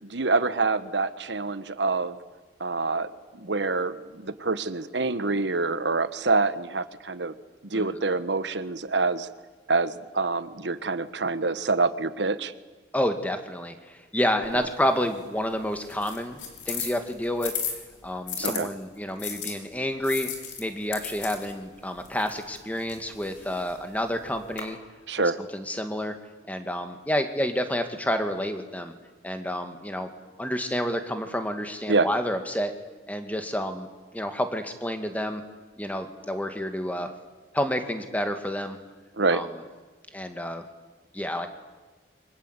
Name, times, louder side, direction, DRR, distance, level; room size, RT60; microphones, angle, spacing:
voice 1, 0.0-2.2 2.6-7.3 7.6-9.3 9.7-12.5 14.5-14.6 18.4-18.7 25.1-25.4 31.9-32.1 39.2-39.4, right 3 dB, 75° right, 13 dB, 1.3 m, -26 dB
voice 2, 12.9-16.4 16.7-17.5 18.0-20.3 20.6-24.8 25.5-26.1 26.5-28.9 29.2-30.1 30.4-32.7 33.1-33.9 34.1-35.4 35.8-37.1 37.5-38.8 39.3-39.5 40.1-40.6 41.1-41.5, equal, 10° left, 7 dB, 2.2 m, -29 dB
sound 1, 14.4-18.6 19.2-24.6, left 7 dB, 80° left, 5.0 m, -37 dB
28.5 x 25.0 x 8.3 m, 1.3 s
head